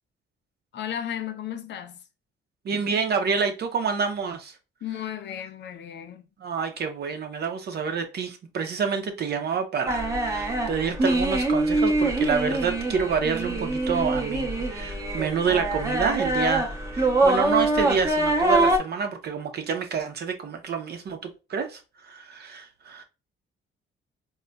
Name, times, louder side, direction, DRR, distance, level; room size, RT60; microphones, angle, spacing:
voice 1, 0.7-2.0 4.8-6.2, left 10 dB, 65° left, 0.5 m, -34 dB
voice 2, 2.6-4.5 6.4-23.0, right 6 dB, 55° right, 0.7 m, -28 dB
sound 1, 9.9-18.8, right 2 dB, 15° right, 0.8 m, -24 dB
4.0 x 2.3 x 2.2 m
cardioid pair, 90°, 20 cm